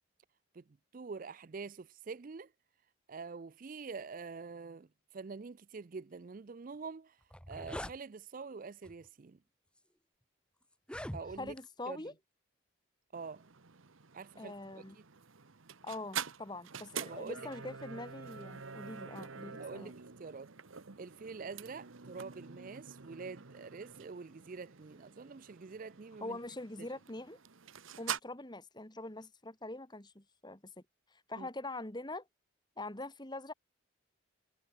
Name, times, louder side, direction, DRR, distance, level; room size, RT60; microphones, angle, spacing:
voice 1, 0.9-2.5 3.1-7.2 7.5-9.4 11.1-11.5 11.9-12.0 13.1-13.4 14.1-14.8 17.0-17.5 19.5-20.5 21.0-26.4 31.4-31.5, right 4 dB, 40° right, 0.4 m, -46 dB
sound 1, 6.8-6.9 7.2-8.0 8.8-9.1 9.8-9.9 10.7-11.6, equal, 5° left, 1.7 m, -43 dB
voice 2, 11.4-12.1 14.4-15.0 15.8-19.9 26.2-27.4 28.0-30.8 31.1-32.3 32.8-33.5, left 2 dB, 20° left, 1.8 m, -44 dB
sound 2, 13.1-28.2, right 7 dB, 70° right, 1.1 m, -46 dB
head